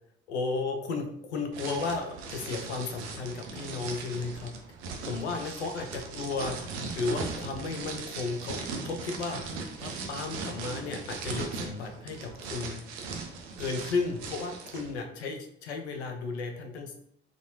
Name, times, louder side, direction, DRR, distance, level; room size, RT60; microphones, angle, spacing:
voice 1, 0.3-4.5 5.0-6.6 6.9-12.8 13.6-16.9, left 4 dB, 85° left, 5 dB, 0.5 m, -34 dB
sound 1, 1.5-14.9, right 4 dB, 70° right, 0.6 m, -39 dB
3.9 x 2.4 x 2.8 m, 0.69 s
figure-of-eight pair, 50°, 33 cm